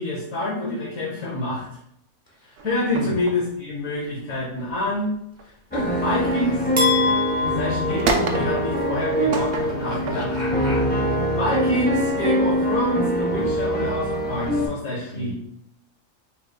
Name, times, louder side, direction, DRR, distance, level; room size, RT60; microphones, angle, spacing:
voice 1, 0.0-1.6 2.6-5.1 6.0-6.6 7.4-10.2 11.3-15.3, left 1 dB, 80° left, -6 dB, 1.5 m, -27 dB
sound 1, 2.6-6.8 7.3-11.8 12.5-14.0, right 4 dB, 60° right, 0.7 m, -31 dB
voice 2, 5.7-6.6 9.9-10.9 15.1-15.3, equal, 35° left, -3 dB, 1.2 m, -33 dB
sound 2, 5.7-14.7, equal, 15° left, 0.4 m, -23 dB
sound 3, 6.8-8.9, left 4 dB, 10° right, 0.9 m, -25 dB
5.7 x 3.3 x 2.2 m, 0.77 s
omnidirectional pair, 1.4 m